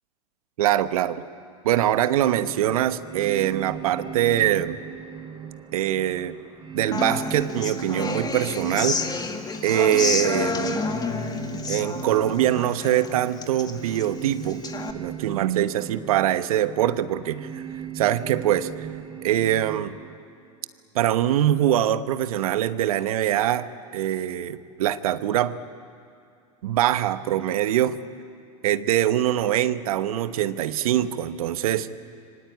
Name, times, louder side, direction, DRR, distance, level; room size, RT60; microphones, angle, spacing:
voice 1, 0.6-1.2 1.6-4.8 5.7-6.4 6.7-9.0 9.6-10.8 11.7-14.6 14.9-17.6 17.9-18.9 19.2-19.9 20.9-25.6 26.6-28.0 28.6-31.9, right 12 dB, 70° right, 12 dB, 1.2 m, -23 dB
sound 1, 2.2-20.1, right 8 dB, 20° right, 4.8 m, -38 dB
Human voice / Acoustic guitar, 6.9-14.9, left 4 dB, 20° left, 2.0 m, -30 dB
26.0 x 24.5 x 8.8 m, 2.4 s
hypercardioid pair, 90°, 19 cm